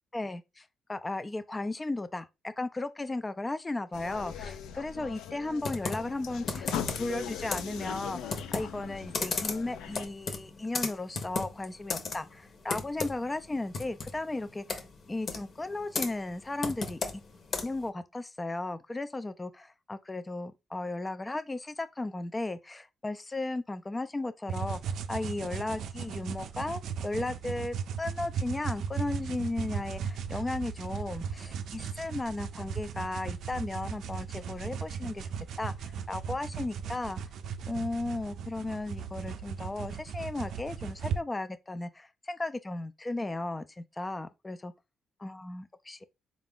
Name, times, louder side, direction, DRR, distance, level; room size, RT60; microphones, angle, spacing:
voice 1, 0.1-6.7 7.0-14.8 15.1-17.0 17.6-35.2 35.6-37.2 37.7-44.7 45.2-46.0, left 2 dB, 20° left, 0.4 m, -35 dB
sound 1, 3.9-10.1, left 8 dB, 85° left, 0.5 m, -40 dB
Computer keyboard, 5.6-17.9, left 4 dB, 50° left, 0.9 m, -37 dB
sound 2, 24.5-41.2, right 7 dB, 75° right, 0.4 m, -37 dB
3.9 x 2.4 x 3.6 m
cardioid pair, 90°, 0 cm